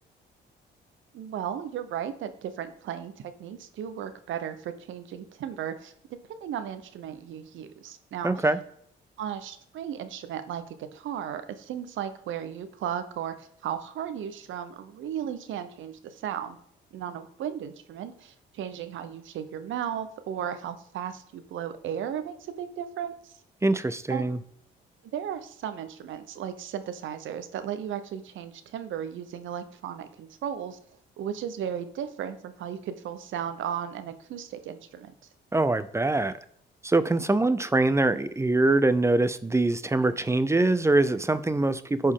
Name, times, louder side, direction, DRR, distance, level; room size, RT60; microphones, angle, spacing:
voice 1, 1.1-3.1 3.4-5.9 6.3-8.4 9.2-16.6 16.9-23.1 24.1-24.4 25.1-30.8 31.2-35.1, right 9 dB, 75° right, 11 dB, 0.9 m, -35 dB
voice 2, 8.2-8.6 23.6-24.4 35.5-36.3 36.8-42.1, right 2 dB, 15° right, 14 dB, 0.5 m, -23 dB
11.0 x 4.5 x 3.7 m, 0.68 s
cardioid pair, 90°, 20 cm